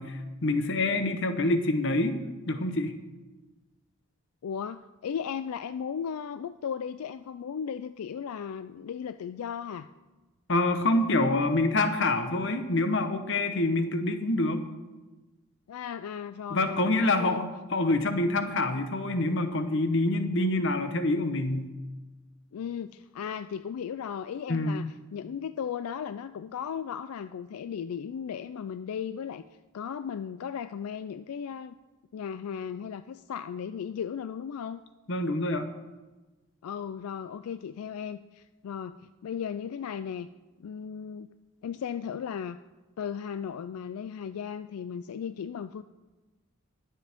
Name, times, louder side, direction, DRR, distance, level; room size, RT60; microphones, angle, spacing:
voice 1, 0.0-2.2 2.5-2.9 10.5-14.6 16.5-21.7 24.5-24.8 35.1-35.7, left 2 dB, 55° left, 8 dB, 0.9 m, -26 dB
voice 2, 4.4-9.9 15.7-17.4 22.5-29.4 29.7-31.8 32.1-34.8 36.6-40.3 40.6-41.3 41.6-42.6 43.0-45.8, left 7 dB, 85° left, 12 dB, 0.3 m, -36 dB
21.0 x 7.5 x 3.5 m, 1.2 s
head